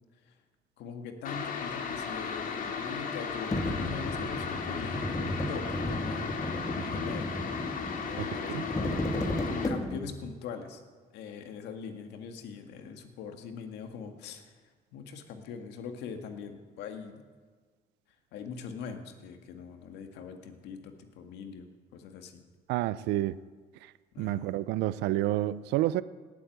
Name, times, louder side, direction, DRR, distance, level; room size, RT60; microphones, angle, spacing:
voice 1, 0.8-6.4 6.7-7.4 8.0-10.8 11.1-14.5 14.9-17.2 18.3-22.4 24.1-24.5, left 6 dB, 85° left, 6 dB, 2.0 m, -42 dB
sound 1, 1.2-9.7, left 5 dB, 55° left, 2.2 m, -35 dB
sound 2, 3.5-10.2, left 1 dB, 20° left, 2.3 m, -34 dB
voice 2, 8.2-8.6 22.7-23.4 23.8-23.9 24.2-26.0, right 15 dB, 90° right, 17 dB, 0.5 m, -29 dB
18.5 x 8.4 x 9.3 m, 1.5 s
cardioid pair, 110°, 17 cm